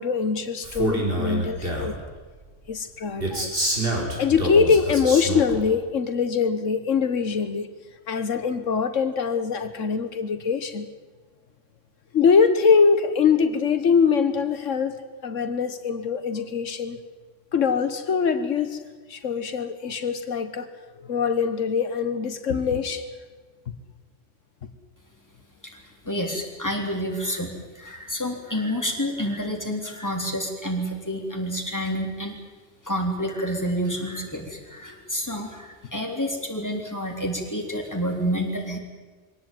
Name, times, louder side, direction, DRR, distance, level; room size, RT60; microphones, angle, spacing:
voice 1, 0.0-2.0 2.7-3.7 4.2-7.7 8.1-10.9 12.1-14.9 15.2-17.0 17.5-18.8 19.1-20.7 21.0-23.1, left 6 dB, 85° left, 10 dB, 1.6 m, -23 dB
Male speech man speaking, 0.6-2.0 3.2-5.6, right 1 dB, 50° right, 4.6 m, -27 dB
voice 2, 25.6-32.4 32.8-38.8, equal, 15° left, 1 dB, 3.8 m, -29 dB
23.0 x 18.0 x 9.4 m, 1.4 s
omnidirectional pair, 1.3 m